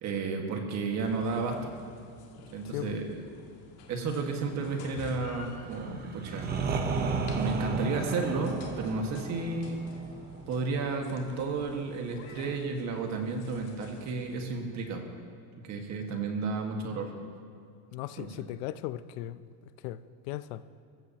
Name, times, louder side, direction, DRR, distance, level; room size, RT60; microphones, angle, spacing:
voice 1, 0.0-1.7 2.5-3.2 3.9-6.5 6.9-9.8 10.5-15.0 15.6-17.1 18.2-18.5, right 4 dB, 40° right, 1.8 m, -32 dB
sound 1, 1.0-14.5, left 4 dB, 55° left, 2.0 m, -51 dB
sound 2, 5.7-11.4, right 4 dB, 20° right, 0.9 m, -34 dB
voice 2, 17.9-19.4 19.8-20.0 20.3-20.6, left 14 dB, 90° left, 0.7 m, -37 dB
24.0 x 14.5 x 3.0 m
cardioid pair, 160°, 44 cm